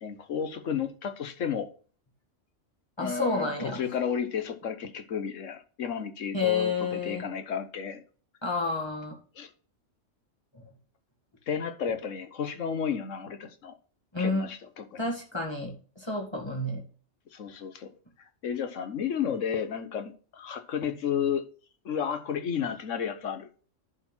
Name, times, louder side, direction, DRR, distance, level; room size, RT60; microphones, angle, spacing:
voice 1, 0.0-1.7 3.0-8.0 9.4-9.5 11.5-13.7 14.2-15.0 17.3-17.9 18.4-21.4 21.8-23.5, left 7 dB, 85° left, 1.4 m, -32 dB
voice 2, 3.0-3.8 6.3-7.2 8.4-9.2 10.5-10.6 14.1-14.5 15.0-16.8 20.8-20.9, left 3 dB, 20° left, 2.0 m, -30 dB
10.5 x 4.5 x 6.0 m
omnidirectional pair, 1.3 m